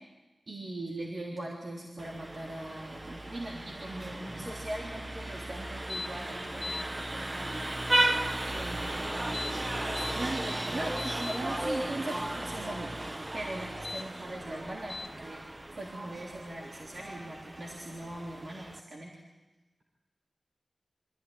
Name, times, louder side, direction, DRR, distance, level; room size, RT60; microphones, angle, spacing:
voice 1, 0.5-7.6 8.5-9.1 9.8-13.0 13.3-15.4 15.7-19.1, right 1 dB, 60° right, -3 dB, 3.5 m, -40 dB
Vehicle horn car horn honking, 2.0-18.8, right 1 dB, 25° right, 0.7 m, -35 dB
voice 2, 4.1-4.5 8.8-9.6, right 1 dB, 80° right, -1 dB, 4.2 m, -45 dB
sound 1, 5.9-6.1 6.4-6.8 9.2-10.1 10.6-11.4 13.7-14.0 14.9-15.1, left 3 dB, 55° left, 1.5 m, -39 dB
25.5 x 15.0 x 9.8 m, 1.2 s
wide cardioid pair, 85°, 0 cm